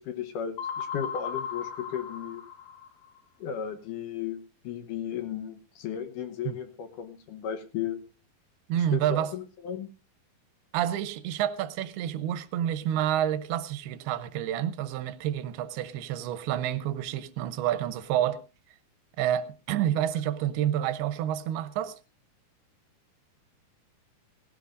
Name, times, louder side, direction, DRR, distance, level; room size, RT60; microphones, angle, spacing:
voice 1, 0.0-2.4 3.4-8.0 8.8-9.9, left 8 dB, 65° left, 2.3 m, -35 dB
sound 1, 0.6-3.2, left 7 dB, 45° left, 1.7 m, -36 dB
voice 2, 8.7-9.3 10.7-18.4 19.2-22.0, right 11 dB, 90° right, 2.8 m, -29 dB
18.0 x 16.5 x 2.5 m
omnidirectional pair, 4.4 m